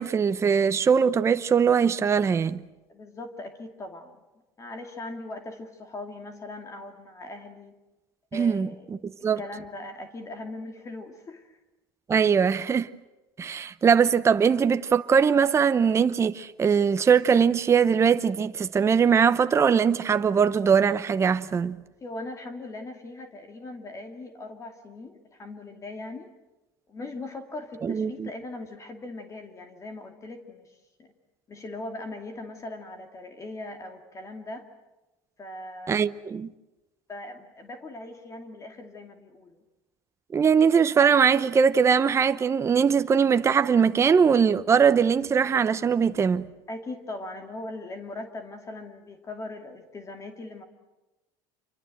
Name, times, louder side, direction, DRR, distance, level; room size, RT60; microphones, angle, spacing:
voice 1, 0.0-2.6 8.3-8.7 9.0-9.4 12.1-12.9 13.4-21.8 27.8-28.3 35.9-36.5 40.3-46.5, right 6 dB, 25° right, 0.8 m, -21 dB
voice 2, 2.9-4.2 4.6-7.8 8.3-9.0 9.4-11.6 22.0-26.3 26.9-30.7 31.0-31.1 31.5-34.7 35.4-36.0 37.1-39.6 46.7-50.6, left 2 dB, 30° left, 2.5 m, -40 dB
27.5 x 24.0 x 7.9 m
supercardioid pair, 105°, 11 cm